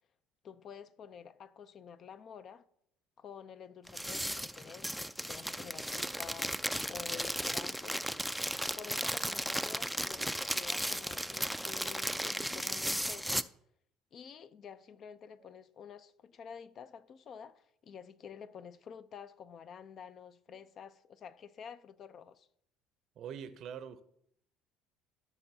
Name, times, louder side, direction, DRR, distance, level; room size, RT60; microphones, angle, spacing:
voice 1, 0.4-2.7 3.2-6.6 6.9-8.1 8.8-13.4 14.1-22.5, left 7 dB, 50° left, 0.5 m, -50 dB
sound 1, 3.9-13.4, equal, ahead, 0.4 m, -35 dB
voice 2, 23.2-24.0, right 8 dB, 55° right, 0.6 m, -44 dB
14.0 x 6.0 x 2.7 m
hypercardioid pair, 60°, 0 cm